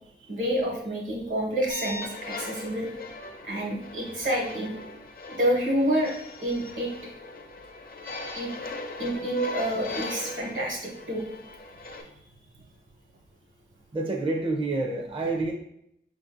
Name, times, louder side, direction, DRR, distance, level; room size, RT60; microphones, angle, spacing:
voice 1, 0.3-2.9 3.4-4.7 5.3-6.1 6.4-6.9 8.3-8.5 9.0-11.2, equal, 70° right, -1 dB, 1.1 m, -28 dB
sound 1, 1.7-12.0, left 1 dB, 45° left, 0.5 m, -38 dB
voice 2, 13.9-15.5, right 2 dB, 25° right, 2 dB, 0.4 m, -28 dB
5.1 x 2.6 x 2.5 m, 0.75 s
wide cardioid pair, 80°, 21 cm